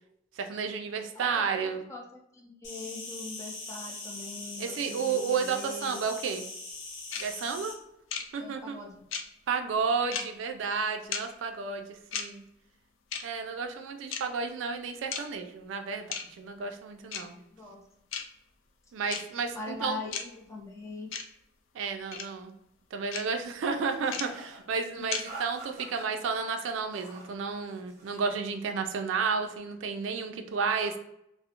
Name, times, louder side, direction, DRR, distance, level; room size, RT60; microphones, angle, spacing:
voice 1, 0.4-1.8 4.6-6.4 7.2-7.8 8.3-8.8 9.5-12.4 13.2-16.0 16.4-17.4 18.9-20.0 21.7-22.5 22.9-31.0, right 5 dB, 80° right, 6 dB, 0.3 m, -32 dB
voice 2, 1.1-6.0 8.4-9.0 17.5-17.8 19.5-21.1 24.9-25.0 30.8-31.0, left 3 dB, 15° left, -1 dB, 0.4 m, -42 dB
Insect, 2.6-7.7, left 2 dB, 65° left, 0.7 m, -41 dB
sound 1, 7.1-7.2 8.1-8.2 9.1-9.2 10.1-10.2 11.1-11.2 12.1-12.2 13.1-13.2 14.1-14.2 15.1-15.2 16.1-16.2 17.1-17.2 18.1-18.2 19.1-19.2 20.1-20.2 21.1-21.2 22.1-22.2 23.1-23.2 24.1-24.2 25.1-25.2, left 7 dB, 85° left, 0.3 m, -33 dB
sound 2, 23.8-24.6 25.2-26.1 26.7-27.3 27.7-28.3, right 2 dB, 35° right, 0.7 m, -46 dB
2.4 x 2.0 x 2.8 m, 0.81 s
head